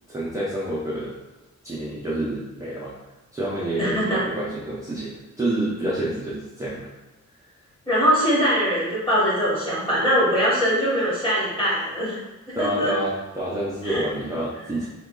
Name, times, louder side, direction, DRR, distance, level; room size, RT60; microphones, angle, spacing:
voice 1, 0.1-1.1 1.6-2.9 3.3-6.9 12.5-14.9, right 1 dB, 10° right, -7 dB, 0.4 m, -28 dB
voice 2, 3.8-4.2 7.9-12.2 12.5-12.9 13.8-14.0, equal, 15° left, -7 dB, 1.0 m, -22 dB
2.9 x 2.2 x 3.6 m, 1.1 s
wide cardioid pair, 170°, 31 cm